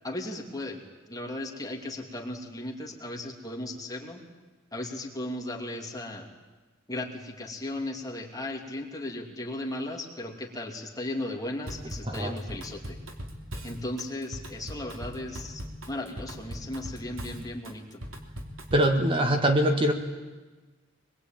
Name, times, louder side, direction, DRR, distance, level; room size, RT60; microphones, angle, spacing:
voice 1, 0.0-4.3 4.7-6.3 6.9-13.0 13.6-18.0, left 1 dB, 20° left, 1 dB, 2.7 m, -36 dB
Drum kit / Drum, 11.7-19.0, equal, 85° right, 3.1 m, -39 dB
voice 2, 18.7-19.9, right 1 dB, 25° right, 5 dB, 1.6 m, -23 dB
24.5 x 21.5 x 9.1 m, 1.3 s
head